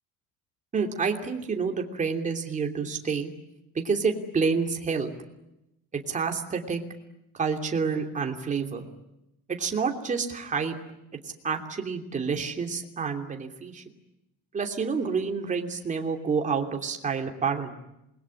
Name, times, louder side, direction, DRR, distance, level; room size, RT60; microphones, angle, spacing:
voice 1, 0.7-3.3 3.7-5.1 6.1-6.8 7.3-8.8 9.5-10.7 11.4-13.8 14.5-17.7, right 5 dB, 20° right, 3 dB, 2.9 m, -28 dB
28.0 x 21.5 x 9.9 m, 0.88 s
cardioid pair, 170°, 34 cm